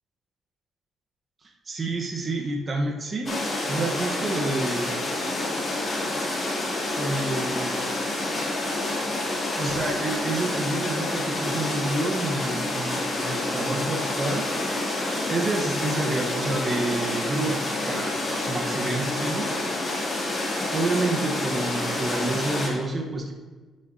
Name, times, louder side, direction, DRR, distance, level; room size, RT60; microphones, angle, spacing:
voice 1, 1.7-4.9 7.0-7.7 9.6-14.5 15.3-19.5 20.7-23.3, right 2 dB, 35° right, 0 dB, 1.1 m, -29 dB
sound 1, 3.3-22.7, left 2 dB, 35° left, 2.6 m, -28 dB
12.0 x 6.6 x 2.8 m, 1.3 s
cardioid pair, 90°, 0 cm